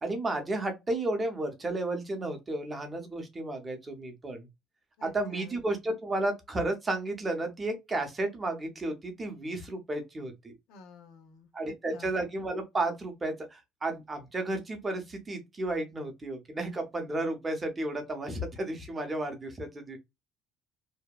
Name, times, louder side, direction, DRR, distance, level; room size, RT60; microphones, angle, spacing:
voice 1, 0.0-4.5 5.0-10.5 11.5-20.0, right 2 dB, 15° right, 0.6 m, -33 dB
voice 2, 5.0-5.6 10.7-12.1, left 3 dB, 90° left, 0.7 m, -50 dB
2.7 x 2.1 x 2.2 m
cardioid pair, 170°, 0 cm